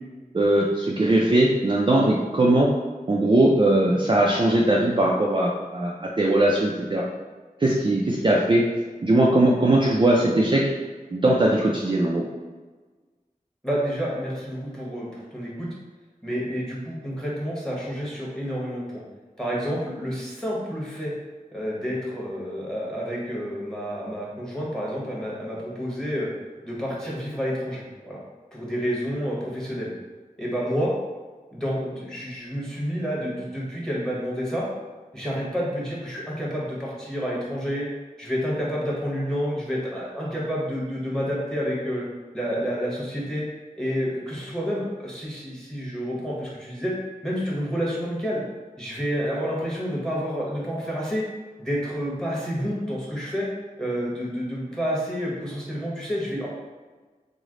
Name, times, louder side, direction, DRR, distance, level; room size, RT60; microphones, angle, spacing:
voice 1, 0.3-2.7 3.1-7.0 7.6-8.7 9.0-10.7 11.1-12.3, right 1 dB, 35° right, -3 dB, 0.4 m, -20 dB
voice 2, 13.6-15.7 16.2-19.0 19.4-21.1 21.5-26.3 26.6-28.2 28.5-29.9 30.4-30.9 31.5-34.6 35.1-37.9 38.2-42.0 42.3-43.4 43.8-46.9 47.2-48.4 48.8-51.3 51.6-53.5 53.8-56.5, equal, 5° left, -6 dB, 1.1 m, -29 dB
3.1 x 2.0 x 3.7 m, 1.3 s
wide cardioid pair, 50°, 15 cm